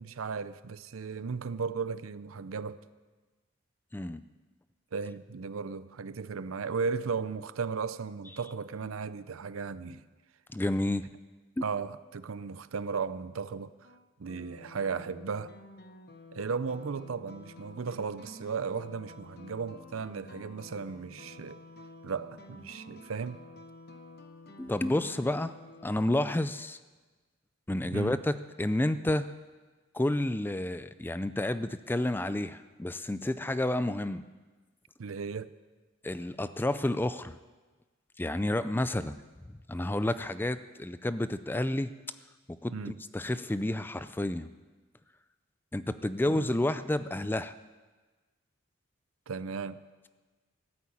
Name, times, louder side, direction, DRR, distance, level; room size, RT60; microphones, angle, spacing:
voice 1, 0.0-2.8 4.9-10.0 11.6-13.7 14.2-15.6 16.3-21.6 22.0-23.4 27.9-28.2 35.0-35.5 42.7-43.0 46.3-46.5 49.3-49.8, right 5 dB, 75° right, 0.6 m, -35 dB
voice 2, 10.5-11.1 24.6-25.5 25.8-26.8 27.7-29.3 29.9-34.2 36.0-37.4 38.2-39.2 39.7-41.9 42.6-42.7 43.1-44.5 45.7-47.5, left 1 dB, 10° left, 0.4 m, -30 dB
sound 1, 13.8-26.1, left 2 dB, 50° left, 1.0 m, -50 dB
14.5 x 8.7 x 8.4 m
head